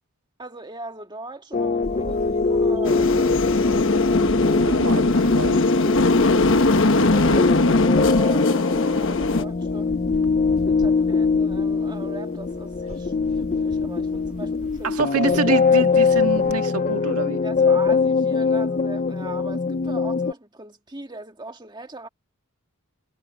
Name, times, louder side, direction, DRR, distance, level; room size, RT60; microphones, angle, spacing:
voice 1, 0.4-3.9 7.1-9.9 10.7-15.0 15.2-15.4 17.4-22.1, right 2 dB, 20° right, 1.8 m, -39 dB
sound 1, 1.5-20.3, left 4 dB, 35° left, 0.5 m, -22 dB
Camera, 1.8-16.6, right 1 dB, 70° right, 1.8 m, -39 dB
sound 2, 2.8-9.4, left 2 dB, 60° left, 1.2 m, -20 dB
voice 2, 4.5-5.6 14.8-17.4, right 4 dB, 90° right, 1.7 m, -26 dB
head